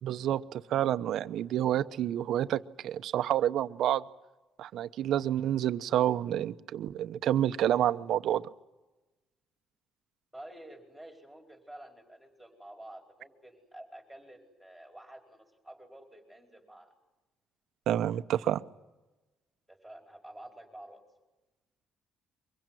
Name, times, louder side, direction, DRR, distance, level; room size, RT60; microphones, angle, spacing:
voice 1, 0.0-4.0 4.6-8.4 17.9-18.6, right 11 dB, 65° right, 12 dB, 0.9 m, -29 dB
voice 2, 10.3-16.9 19.7-21.0, right 1 dB, ahead, 3 dB, 4.8 m, -50 dB
24.0 x 22.5 x 9.2 m, 1.1 s
cardioid pair, 150°, 0 cm